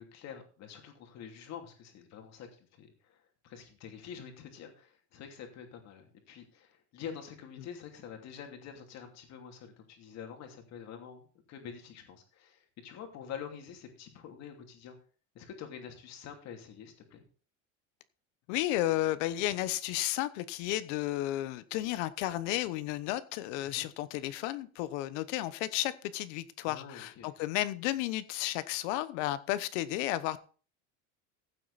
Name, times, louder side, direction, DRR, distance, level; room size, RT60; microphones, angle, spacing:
voice 1, 0.0-15.0 15.3-17.2 23.7-23.8 26.7-27.3, left 7 dB, 45° left, 2.8 m, -47 dB
voice 2, 18.5-30.4, left 15 dB, 75° left, 1.0 m, -33 dB
15.5 x 7.6 x 4.1 m
supercardioid pair, 135°, 36 cm